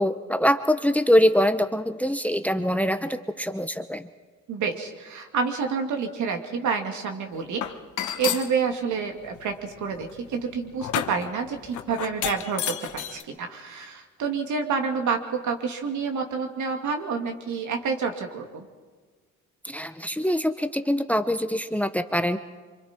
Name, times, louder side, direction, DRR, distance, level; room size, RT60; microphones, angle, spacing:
voice 1, 0.0-4.1 19.6-22.4, equal, 5° left, 10 dB, 0.9 m, -24 dB
voice 2, 4.5-7.6 8.2-18.7, right 5 dB, 75° right, 3 dB, 2.6 m, -28 dB
sound 1, 7.6-8.5 9.2-13.2, left 10 dB, 75° left, 1.2 m, -31 dB
26.0 x 25.0 x 4.5 m, 1.4 s
cardioid pair, 90°, 30 cm